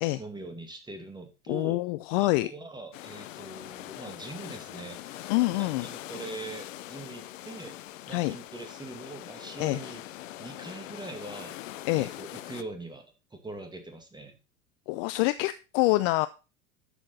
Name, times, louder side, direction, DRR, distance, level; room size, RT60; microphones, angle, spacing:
voice 1, 0.2-1.8 2.2-7.8 8.1-10.0 10.4-11.6 11.9-13.0 13.3-14.4, right 2 dB, 10° right, 6 dB, 2.3 m, -42 dB
voice 2, 1.5-2.5 5.3-5.9 8.1-8.4 9.6-9.8 11.9-12.1 14.9-16.3, left 20 dB, 40° left, 14 dB, 0.5 m, -26 dB
sound 1, 2.9-12.6, left 14 dB, 60° left, 0.8 m, -42 dB
12.0 x 6.5 x 4.1 m, 0.31 s
figure-of-eight pair, 80°, 44 cm